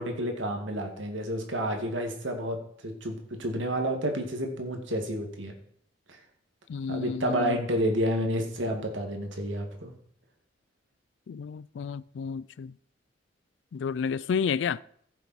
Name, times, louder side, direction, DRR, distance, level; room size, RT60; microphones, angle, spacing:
voice 1, 0.0-5.5 6.9-9.9, equal, 80° right, 2.1 m, -30 dB
voice 2, 6.7-7.6 11.3-12.7 13.7-14.8, left 6 dB, 65° left, 0.3 m, -31 dB
15.0 x 7.1 x 4.4 m
head